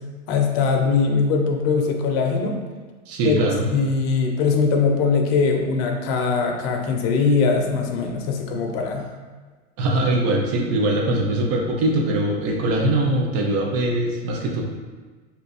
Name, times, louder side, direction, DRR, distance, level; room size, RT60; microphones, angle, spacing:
voice 1, 0.3-2.6 3.2-3.4 3.7-9.1, left 5 dB, 55° left, 2 dB, 0.6 m, -21 dB
voice 2, 3.1-3.7 9.8-14.6, right 1 dB, 40° right, 0 dB, 0.7 m, -22 dB
2.8 x 2.3 x 4.1 m, 1.3 s
supercardioid pair, 120°, 38 cm